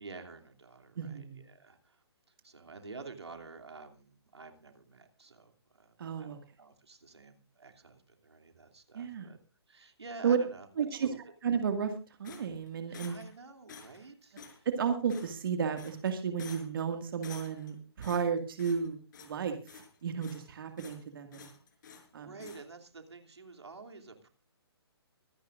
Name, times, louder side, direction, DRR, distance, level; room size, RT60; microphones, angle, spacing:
voice 1, 0.0-2.0 2.4-9.4 9.7-11.2 12.9-14.7 22.2-24.3, right 3 dB, 85° right, 5 dB, 2.9 m, -50 dB
voice 2, 1.0-1.5 6.0-6.4 8.9-9.3 10.2-10.4 10.8-11.1 11.4-11.9 12.2-13.2 14.8-19.5 20.0-21.5 22.1-22.3, right 7 dB, 55° right, 6 dB, 2.0 m, -33 dB
sound 1, 12.2-13.4 13.7-14.1 14.4-14.6 15.1-15.5 15.8-16.1 16.4-16.8 17.2-17.7 18.0-18.9 19.1-19.4 19.7-20.5 20.8-21.0 21.3-22.1 22.4-22.6, left 6 dB, 45° left, 5.2 m, -50 dB
25.0 x 10.5 x 2.5 m, 0.34 s
hypercardioid pair, 145°, 14 cm